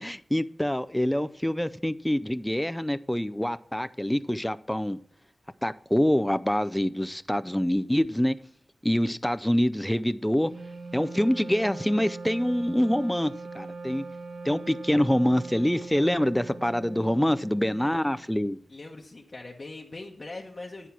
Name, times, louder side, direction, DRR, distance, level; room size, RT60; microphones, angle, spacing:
voice 1, 0.0-5.0 5.6-8.4 8.8-10.5 10.9-14.0 14.4-18.6, equal, 5° left, 0.5 m, -25 dB
Wind instrument woodwind instrument, 10.4-18.2, right 3 dB, 75° right, 1.7 m, -41 dB
voice 2, 17.7-18.3 18.7-20.9, left 2 dB, 45° left, 1.0 m, -42 dB
10.0 x 4.7 x 5.8 m
wide cardioid pair, 65°, 0 cm